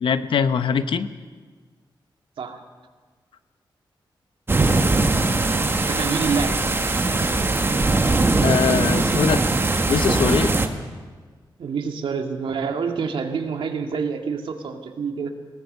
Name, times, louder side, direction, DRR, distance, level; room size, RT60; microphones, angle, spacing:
voice 1, 0.0-1.1 8.4-9.4 9.9-10.6, left 7 dB, 80° left, 12 dB, 0.9 m, -22 dB
sound 1, 4.5-10.7, right 2 dB, 25° right, 1.5 m, -20 dB
voice 2, 5.9-6.8 11.6-15.3, right 5 dB, 80° right, 4 dB, 2.1 m, -27 dB
22.0 x 17.5 x 6.7 m, 1.5 s
wide cardioid pair, 100°, 9 cm